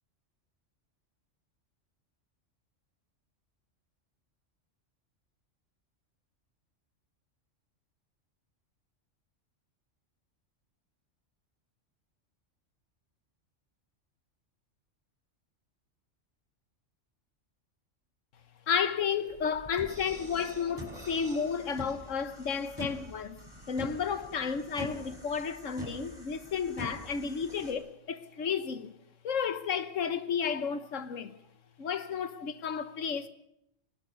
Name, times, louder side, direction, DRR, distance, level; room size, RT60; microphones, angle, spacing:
voice 1, 18.7-23.4 23.7-29.0 29.2-31.3 31.8-33.3, left 6 dB, 90° left, 1.5 m, -32 dB
sound 1, 19.3-27.7, left 1 dB, 20° right, 4.8 m, -44 dB
21.5 x 18.5 x 6.6 m
omnidirectional pair, 1.3 m